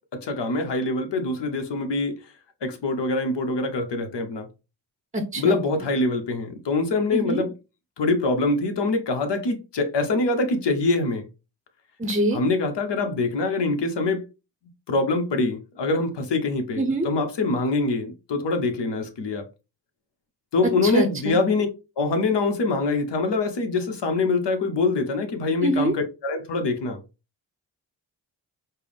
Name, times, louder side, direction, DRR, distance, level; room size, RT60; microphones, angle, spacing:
voice 1, 0.1-2.2 2.6-4.5 5.3-7.5 8.0-11.3 12.3-14.2 14.9-19.5 20.5-21.7 22.0-27.0, left 3 dB, 75° left, 1.0 m, -24 dB
voice 2, 5.1-5.6 7.1-7.4 12.0-12.4 16.8-17.1 20.8-21.3 25.6-25.9, right 1 dB, 15° right, 0.6 m, -24 dB
4.4 x 2.0 x 3.4 m
cardioid pair, 65°, 42 cm